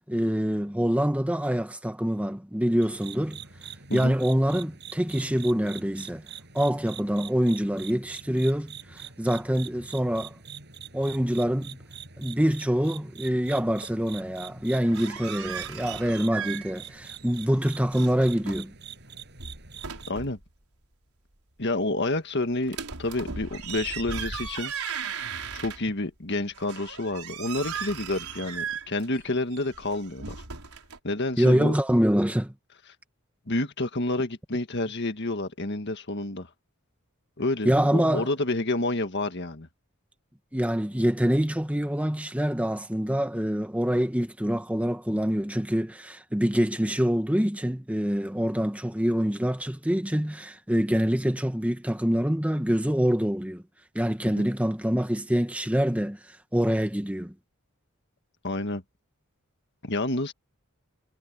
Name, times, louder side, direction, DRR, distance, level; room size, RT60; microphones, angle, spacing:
voice 1, 0.1-3.4 3.9-6.2 6.5-10.3 10.9-11.8 12.2-18.7 31.4-32.5 37.6-38.3 40.5-53.6 53.9-57.3, equal, 5° right, 1.0 m, -25 dB
sound 1, 2.8-20.1, right 8 dB, 50° right, 7.4 m, -44 dB
sound 2, 14.8-16.9 17.2-18.7 19.2-20.4 22.7-26.1 26.5-31.0, right 6 dB, 85° right, 4.3 m, -37 dB
voice 2, 20.1-20.4 21.6-25.1 25.5-30.4 31.0-31.7 33.5-36.5 37.4-39.7 54.4-54.5 58.4-58.8 59.8-60.3, left 2 dB, 50° left, 1.8 m, -29 dB
head